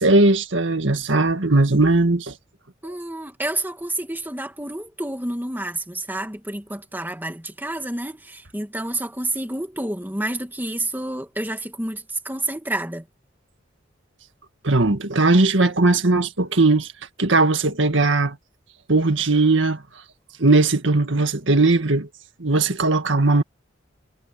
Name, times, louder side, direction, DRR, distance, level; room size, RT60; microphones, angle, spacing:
voice 1, 0.0-2.3 14.6-16.9 17.2-18.4 18.9-19.8 20.4-22.1 22.4-23.4, right 2 dB, 75° right, 1.9 m, -18 dB
voice 2, 2.8-13.0, right 1 dB, 10° right, 2.4 m, -29 dB
head